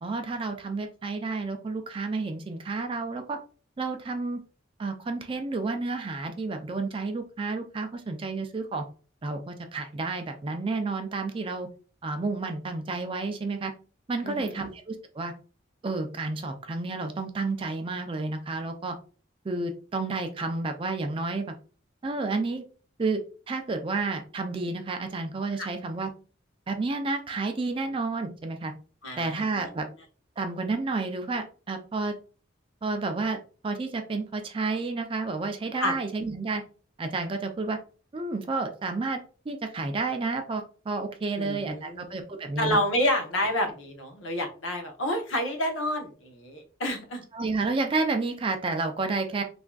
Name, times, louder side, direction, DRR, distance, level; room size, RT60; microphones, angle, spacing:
voice 1, 0.0-3.4 3.8-4.4 4.8-8.8 9.2-11.7 12.0-13.7 14.1-15.3 15.8-19.0 19.4-21.5 22.0-22.6 23.0-23.2 23.5-26.1 26.7-28.7 29.2-29.9 30.4-32.1 32.8-36.6 37.0-37.8 38.1-39.2 39.5-42.8 47.3-49.4, right 3 dB, 25° right, 6 dB, 0.3 m, -30 dB
voice 2, 14.2-14.6 25.6-25.7 29.0-29.4 35.8-35.9 41.4-42.1 42.6-47.2, left 1 dB, 75° left, 4 dB, 0.7 m, -29 dB
3.4 x 2.4 x 2.2 m, 0.38 s
head